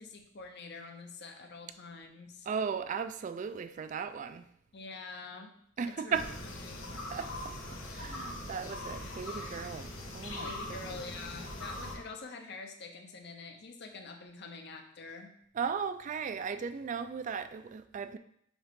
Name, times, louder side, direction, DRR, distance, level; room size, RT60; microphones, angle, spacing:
voice 1, 0.0-2.5 4.7-5.6 6.0-7.0 10.3-15.3, left 4 dB, 60° left, 5 dB, 0.8 m, -46 dB
voice 2, 2.5-4.5 5.8-6.2 7.1-10.5 10.8-11.0 15.6-18.2, right 6 dB, 40° right, 11 dB, 0.3 m, -36 dB
sound 1, 6.1-12.0, left 1 dB, 85° left, 1.4 m, -41 dB
7.2 x 3.7 x 3.6 m, 0.68 s
head